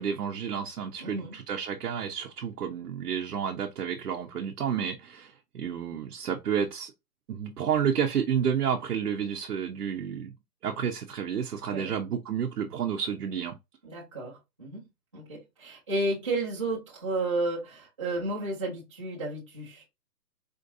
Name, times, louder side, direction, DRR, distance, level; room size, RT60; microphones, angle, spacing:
voice 1, 0.0-6.9 7.3-10.3 10.6-13.5, right 8 dB, 65° right, 0.8 m, -30 dB
voice 2, 1.0-1.4 11.7-11.9 13.8-14.8 15.1-19.8, right 2 dB, 20° right, 0.7 m, -32 dB
4.4 x 2.5 x 2.7 m
hypercardioid pair, 170°, 49 cm